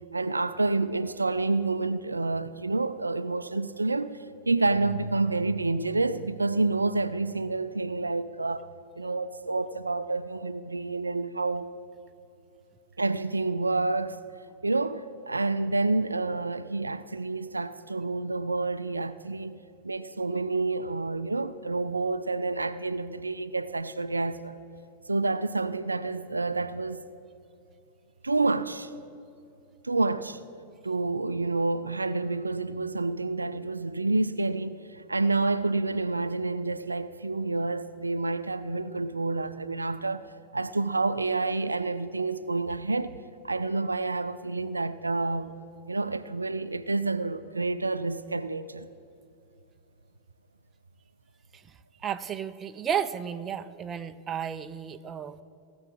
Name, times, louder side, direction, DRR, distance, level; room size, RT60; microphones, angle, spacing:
voice 1, 0.1-8.7 9.0-11.7 13.0-14.2 14.6-19.6 19.8-24.6 25.1-27.0 28.2-28.9 29.8-30.4 30.8-43.1 43.4-45.5 45.9-48.9, right 3 dB, 80° right, 0.4 m, -28 dB
sound 1, 4.7-7.2, right 3 dB, 35° left, 3.2 m, -42 dB
voice 2, 52.0-55.4, right 8 dB, 25° right, 0.5 m, -33 dB
17.0 x 7.1 x 7.2 m
figure-of-eight pair, 90°, 0 cm